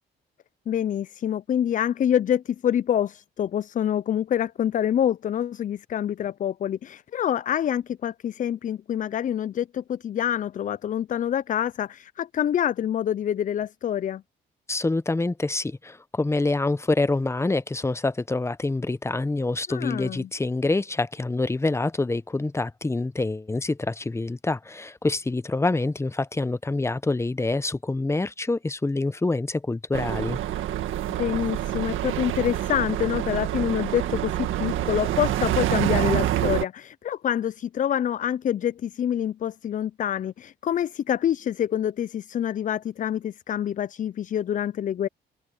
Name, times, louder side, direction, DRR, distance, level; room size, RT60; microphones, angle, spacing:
voice 1, 0.7-14.2 19.7-20.3 31.2-45.1, left 10 dB, 40° left, 0.4 m, -26 dB
voice 2, 14.7-30.4, left 2 dB, 15° left, 0.8 m, -26 dB
sound 1, 29.9-36.6, right 13 dB, 85° right, 1.9 m, -26 dB
cardioid pair, 90°, 20 cm